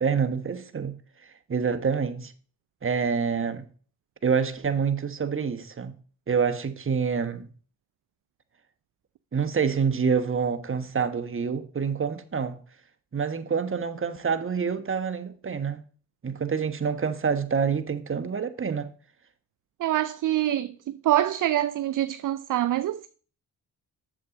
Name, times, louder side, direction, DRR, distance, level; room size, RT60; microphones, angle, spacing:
voice 1, 0.0-1.0 1.5-2.3 2.8-3.7 4.2-5.9 6.3-7.5 9.3-12.6 13.1-15.8 16.2-18.9, right 6 dB, 30° right, 1.2 m, -27 dB
voice 2, 19.8-23.1, right 13 dB, 50° right, 0.5 m, -25 dB
7.6 x 7.0 x 3.9 m
supercardioid pair, 60°, 40 cm